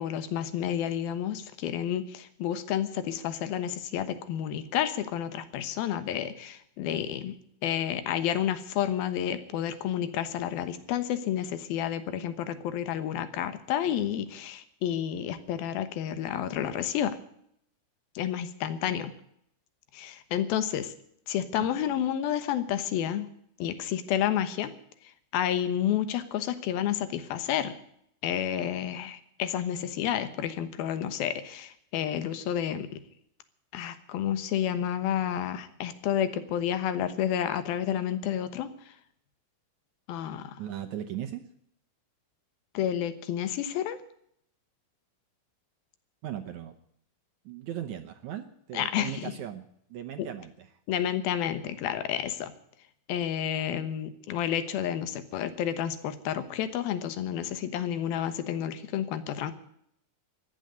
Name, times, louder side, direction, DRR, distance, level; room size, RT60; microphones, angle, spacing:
voice 1, 0.0-7.4 7.6-17.2 18.2-19.1 19.9-20.9 21.3-23.3 23.6-24.7 25.3-27.7 28.2-33.0 33.7-38.9 40.1-40.6 42.7-44.0 48.7-49.3 50.2-50.3 50.9-52.5 53.1-59.5, left 10 dB, 85° left, 12 dB, 3.0 m, -30 dB
voice 2, 40.6-41.4 46.2-46.8 47.5-50.7, right 11 dB, 70° right, 7 dB, 2.0 m, -38 dB
14.0 x 10.5 x 9.2 m, 0.71 s
omnidirectional pair, 4.2 m